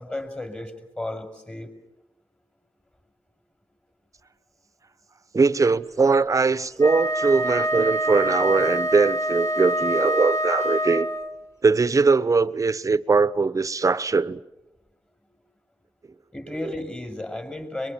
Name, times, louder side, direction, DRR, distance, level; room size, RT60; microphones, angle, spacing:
voice 1, 0.0-1.7 16.3-17.9, left 1 dB, 15° left, 5.7 m, -33 dB
voice 2, 5.3-11.1 11.6-14.4 16.6-16.7, right 4 dB, 40° right, 1.1 m, -21 dB
Wind instrument woodwind instrument, 6.7-11.4, right 1 dB, 40° left, 3.9 m, -25 dB
23.0 x 22.5 x 9.7 m
cardioid pair, 60°, 9 cm